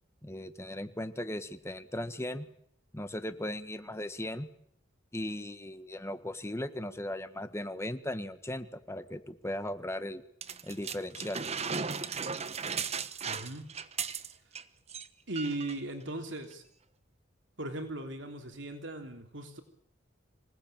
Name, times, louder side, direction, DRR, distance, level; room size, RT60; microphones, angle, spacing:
voice 1, 0.2-2.5 2.9-4.5 5.1-10.2 10.6-11.4, left 1 dB, 15° left, 10 dB, 1.5 m, -37 dB
sound 1, 10.4-14.6 14.9-15.1 15.4-15.8 16.5-16.6, right 6 dB, 35° right, 1.2 m, -36 dB
voice 2, 13.3-13.7 15.3-16.6 17.6-19.6, right 2 dB, 65° right, 5 dB, 3.3 m, -38 dB
26.0 x 18.0 x 9.1 m, 0.69 s
head